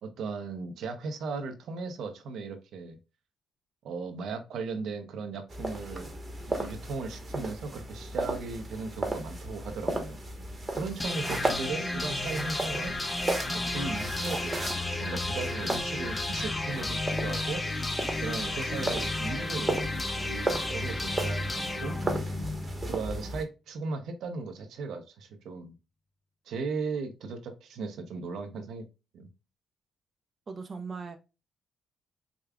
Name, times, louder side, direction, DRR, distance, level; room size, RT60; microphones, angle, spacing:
voice 1, 0.0-3.0 3.8-6.1 6.5-10.2 10.7-12.9 13.5-14.6 15.0-17.6 18.2-19.8 20.2-22.0 22.8-25.7 26.5-28.8 29.1-29.3, right 4 dB, 75° right, 7 dB, 0.7 m, -37 dB
sound 1, 5.5-23.4, right 1 dB, 25° right, 1.0 m, -35 dB
sound 2, 10.7-20.7, left 4 dB, 55° left, 0.9 m, -50 dB
sound 3, 11.0-22.9, left 2 dB, 15° left, 0.6 m, -33 dB
voice 2, 30.5-31.2, right 4 dB, 40° right, 6 dB, 0.6 m, -38 dB
5.0 x 2.3 x 2.2 m, 0.29 s
cardioid pair, 90°, 0 cm